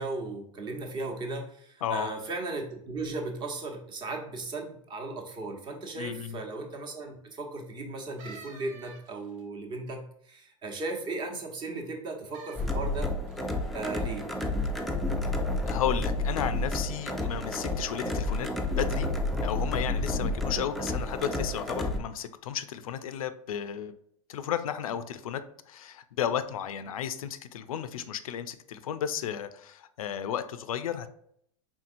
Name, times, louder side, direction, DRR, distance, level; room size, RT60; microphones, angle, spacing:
voice 1, 0.0-13.1 13.7-14.3 20.5-20.6, right 3 dB, 25° right, 2 dB, 0.9 m, -36 dB
voice 2, 1.8-2.1 6.0-6.4 15.7-18.5 18.8-19.1 19.4-23.9 24.3-31.1, left 9 dB, 85° left, 12 dB, 0.4 m, -33 dB
sound 1, 8.2-9.4 12.3-12.7 13.3-13.6 14.3-14.4, right 3 dB, 75° right, 1.0 m, -48 dB
sound 2, 12.6-22.0, left 2 dB, ahead, 0.4 m, -30 dB
4.4 x 3.7 x 2.5 m, 0.69 s
hypercardioid pair, 125°, 17 cm